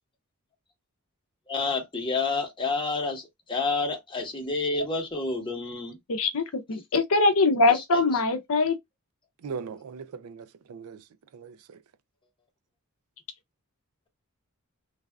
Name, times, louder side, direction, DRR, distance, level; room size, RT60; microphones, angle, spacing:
voice 1, 1.5-6.0 7.7-8.0, left 3 dB, 20° left, 1.0 m, -29 dB
voice 2, 6.1-8.8, left 3 dB, 65° left, 0.6 m, -23 dB
voice 3, 9.4-11.0 11.3-11.6, right 5 dB, 70° right, 0.4 m, -39 dB
3.3 x 2.4 x 2.2 m
head